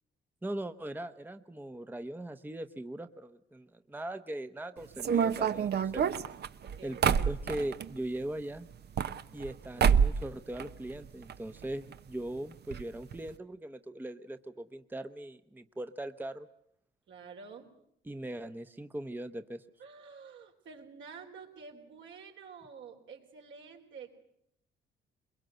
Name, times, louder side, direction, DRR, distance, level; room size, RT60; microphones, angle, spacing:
voice 1, 0.4-6.0 6.8-8.7 9.3-16.5 18.0-19.6, right 1 dB, 10° right, 9 dB, 0.9 m, -40 dB
sound 1, 5.0-7.9 8.7-9.5 9.8-10.3 10.6-11.4 11.6-11.7 11.9-12.0 12.7-12.8 13.1-13.3, right 7 dB, 55° right, 0.9 m, -27 dB
voice 2, 6.6-7.2 17.1-17.7 19.8-24.1, right 5 dB, 70° right, 2 dB, 4.0 m, -49 dB
22.5 x 22.0 x 7.9 m, 0.73 s
cardioid pair, 90°, 20 cm